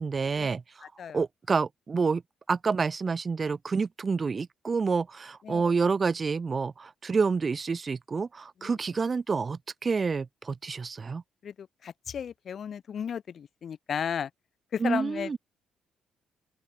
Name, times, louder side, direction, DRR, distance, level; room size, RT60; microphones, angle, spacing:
voice 1, 0.0-0.9 1.1-2.2 2.5-11.2 14.8-15.4, right 5 dB, 30° right, 2.9 m, -28 dB
voice 2, 11.4-14.3 14.7-15.4, left 8 dB, 50° left, 2.2 m, -34 dB
open air
cardioid pair, 130°, 0 cm